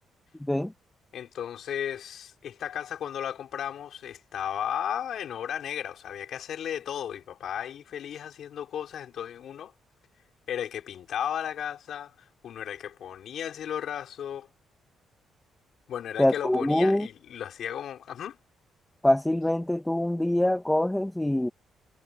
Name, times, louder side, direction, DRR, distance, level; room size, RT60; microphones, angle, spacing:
voice 1, 1.1-9.7 10.5-12.1 12.4-14.5 15.9-18.4, left 9 dB, 65° left, 4.7 m, -35 dB
voice 2, 16.2-17.1 19.0-21.5, left 1 dB, 5° left, 1.4 m, -24 dB
cardioid pair, 135°, 0 cm